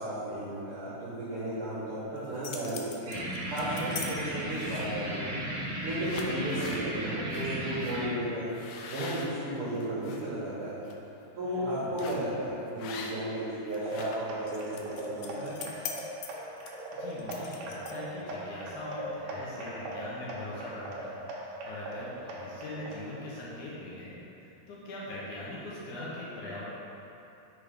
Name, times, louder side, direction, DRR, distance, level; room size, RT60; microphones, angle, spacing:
voice 1, 0.0-3.1 3.5-5.3 5.8-8.5 8.9-10.8 11.3-15.6, right 1 dB, 75° right, -10 dB, 1.3 m, -34 dB
sound 1, 2.2-4.1 4.5-5.0 5.6-5.7 6.0-6.8 7.3-7.5 7.8-8.0 8.5-10.2 10.7-10.9 12.0-12.3 12.8-13.4 13.7-18.2, left 6 dB, 90° left, 1.7 m, -42 dB
sound 2, 3.1-8.1, right 1 dB, 55° right, 0.9 m, -35 dB
voice 2, 11.4-11.9 16.9-26.7, left 1 dB, 70° left, -6 dB, 2.0 m, -41 dB
sound 3, 13.9-23.0, right 1 dB, 90° right, 1.5 m, -40 dB
5.5 x 4.9 x 5.0 m, 2.9 s
omnidirectional pair, 4.3 m